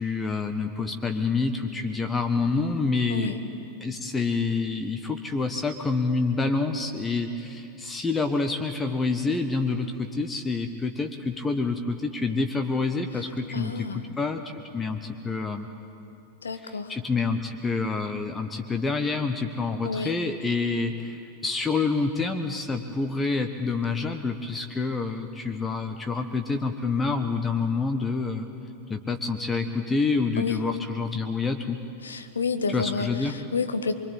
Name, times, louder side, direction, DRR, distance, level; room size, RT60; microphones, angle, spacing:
voice 1, 0.0-3.3 3.8-15.7 16.6-28.5 28.9-31.8 32.7-33.4, left 4 dB, 15° left, 6 dB, 1.3 m, -27 dB
voice 2, 13.5-14.1 16.4-16.9 19.8-20.1 30.4-30.6 32.0-33.9, left 4 dB, 70° left, 8 dB, 1.5 m, -30 dB
24.0 x 24.0 x 9.0 m, 2.9 s
figure-of-eight pair, 90°, 0 cm